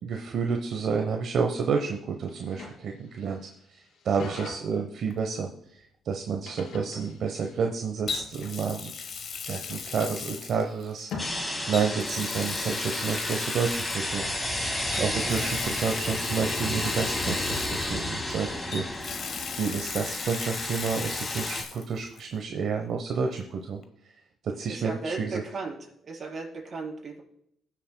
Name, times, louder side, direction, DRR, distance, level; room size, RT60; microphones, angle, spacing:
voice 1, 0.0-8.9 9.5-19.2 19.5-23.8 24.4-25.4, right 5 dB, 65° right, 3 dB, 1.0 m, -30 dB
sound 1, 2.3-4.6 6.4-7.9 8.4-8.6 9.4-11.3 12.3-13.6 15.1-15.3, left 4 dB, 80° left, 3.5 m, -44 dB
Water tap faucet, 5.1-5.3 8.1-11.1 11.7-14.2 14.9-18.3 18.7-21.9 22.2-22.3 23.8-23.9, left 6 dB, 60° left, 1.3 m, -37 dB
sound 2, 11.2-21.6, left 1 dB, 15° left, 2.7 m, -32 dB
voice 2, 15.0-15.3 24.7-25.7 26.0-27.2, right 3 dB, 45° right, -2 dB, 4.6 m, -36 dB
20.0 x 7.5 x 2.3 m, 0.74 s
cardioid pair, 90°, 0 cm